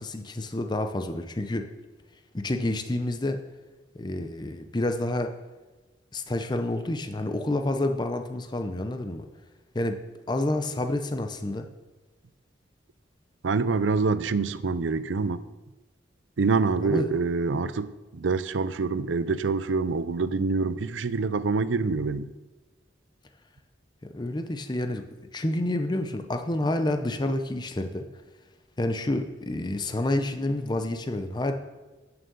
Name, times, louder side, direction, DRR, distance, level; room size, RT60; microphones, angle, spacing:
voice 1, 0.0-1.6 2.3-3.4 3.9-5.3 6.1-9.3 9.7-10.0 10.3-11.7 16.8-17.1 24.1-25.0 25.3-28.0 28.8-31.5, left 1 dB, 25° left, 0.6 m, -28 dB
voice 2, 13.4-15.4 16.4-22.3, right 4 dB, 85° right, 0.5 m, -26 dB
8.8 x 7.5 x 6.7 m
head